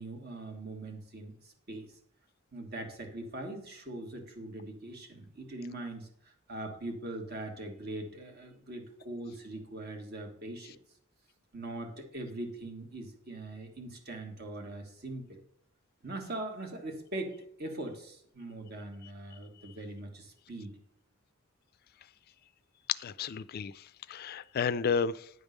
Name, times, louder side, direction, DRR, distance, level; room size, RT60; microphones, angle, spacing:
voice 1, 0.0-1.9 2.5-10.7 11.5-15.4 16.0-20.8, right 2 dB, 50° right, 1.5 m, -41 dB
voice 2, 22.9-25.3, left 6 dB, 45° left, 0.3 m, -32 dB
9.4 x 3.6 x 6.4 m
head